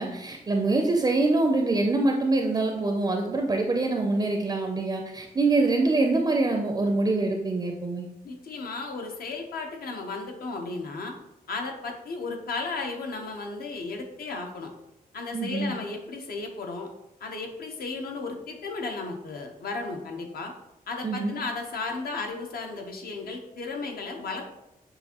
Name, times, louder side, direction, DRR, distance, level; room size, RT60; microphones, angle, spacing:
voice 1, 0.0-8.1 15.3-15.7 21.0-21.3, right 2 dB, 25° right, 2 dB, 0.4 m, -25 dB
voice 2, 8.2-11.1 11.5-14.7 15.1-16.9 17.2-20.5 20.9-24.5, left 3 dB, 75° left, 2 dB, 0.7 m, -34 dB
6.5 x 2.5 x 2.8 m, 0.92 s
wide cardioid pair, 135°, 16 cm